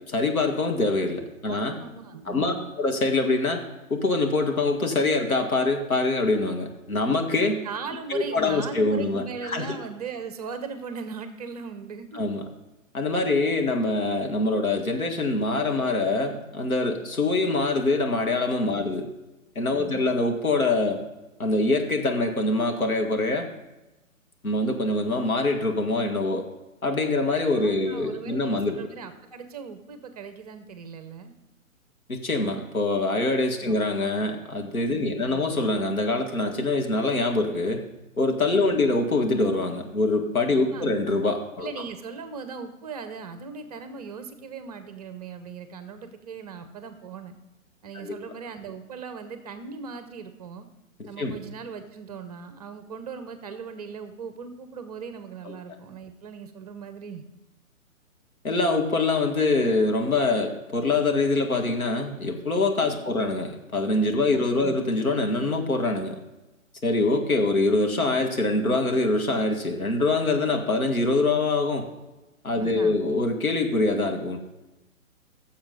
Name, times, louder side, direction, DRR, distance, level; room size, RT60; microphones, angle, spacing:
voice 1, 0.1-1.8 2.3-3.6 3.9-7.6 8.1-9.8 12.1-12.4 12.9-19.1 19.6-21.0 21.4-23.5 24.4-26.4 26.8-28.8 32.1-37.8 38.2-41.7 48.0-48.2 51.0-51.3 55.5-55.6 58.4-66.2 66.8-71.8 72.4-74.4, left 2 dB, 80° left, 3 dB, 1.8 m, -24 dB
voice 2, 1.5-2.7 7.6-12.2 18.7-19.0 19.8-20.1 27.5-31.3 33.6-33.8 34.9-35.4 38.6-38.9 40.5-41.0 41.6-47.4 47.8-50.7 51.1-57.2 62.8-63.2 64.3-64.8 72.6-73.0, right 5 dB, 30° right, 9 dB, 0.7 m, -39 dB
15.0 x 7.0 x 3.9 m, 1.0 s
figure-of-eight pair, 135°, 42 cm